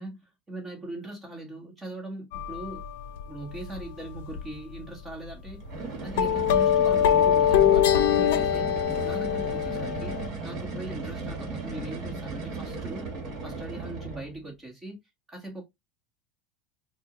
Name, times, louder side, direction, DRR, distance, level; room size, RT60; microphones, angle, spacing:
voice 1, 0.0-2.8 3.3-5.6 6.0-8.7 9.0-10.2 10.4-13.1 13.4-15.0 15.3-15.6, right 1 dB, 10° right, 1.2 m, -40 dB
sound 1, 2.3-3.2 3.5-3.8 4.1-4.4 4.7-4.8 5.5-5.6 6.2-10.3, left 9 dB, 85° left, 0.5 m, -23 dB
sound 2, 5.6-14.4, right 3 dB, 40° right, 1.2 m, -36 dB
4.4 x 2.1 x 2.9 m
cardioid pair, 170°, 0 cm